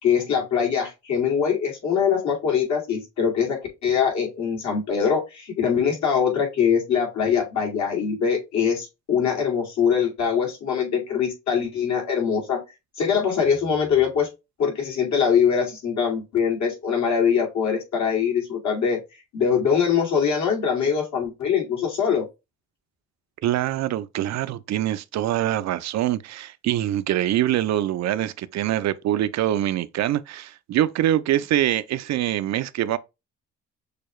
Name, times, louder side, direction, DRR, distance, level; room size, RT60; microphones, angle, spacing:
voice 1, 0.0-12.6 13.0-14.3 14.6-19.0 19.3-22.3, left 7 dB, 65° left, 2.3 m, -23 dB
voice 2, 23.4-33.0, right 12 dB, 65° right, 0.5 m, -24 dB
6.5 x 2.3 x 3.1 m
cardioid pair, 90°, 30 cm